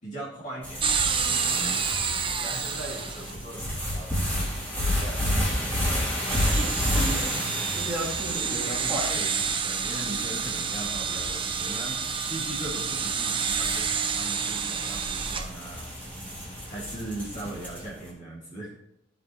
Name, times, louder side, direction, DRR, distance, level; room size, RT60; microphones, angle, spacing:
voice 1, 0.0-1.8 2.4-4.2 4.8-5.7 8.3-12.0 12.3-15.9 16.7-18.8, right 1 dB, 40° left, -6 dB, 2.5 m, -39 dB
sound 1, 0.6-18.0, left 1 dB, 10° left, 3.2 m, -32 dB
sound 2, 0.8-17.9, right 6 dB, 25° right, 0.8 m, -31 dB
voice 2, 6.5-7.4 7.7-9.1, right 1 dB, 5° right, -7 dB, 2.9 m, -34 dB
14.0 x 7.5 x 3.1 m, 0.78 s
head